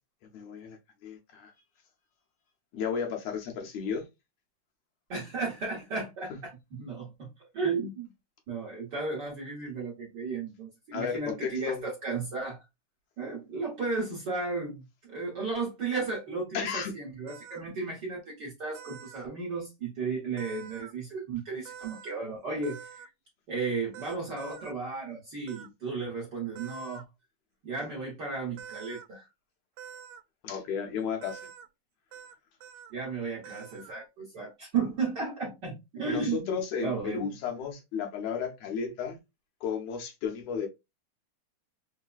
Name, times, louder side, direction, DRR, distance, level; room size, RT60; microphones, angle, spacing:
voice 1, 0.3-1.5 2.7-4.1 10.9-11.8 16.5-16.9 30.4-31.5 36.0-39.2 39.6-40.7, left 6 dB, 70° left, 1.9 m, -33 dB
voice 2, 5.1-8.1 8.5-12.6 13.2-23.1 23.5-27.0 27.6-29.3 32.9-37.4, right 4 dB, 55° right, 1.2 m, -34 dB
sound 1, 17.3-17.6 18.7-19.3 20.4-20.9 21.7-22.2 22.6-23.1 23.9-24.7 25.5-25.7 26.6-27.0 28.6-29.1 29.8-30.2 31.2-31.7 32.1-32.3 32.6-32.9 33.4-34.0, right 8 dB, 85° right, 1.9 m, -46 dB
4.6 x 2.1 x 2.3 m
omnidirectional pair, 3.3 m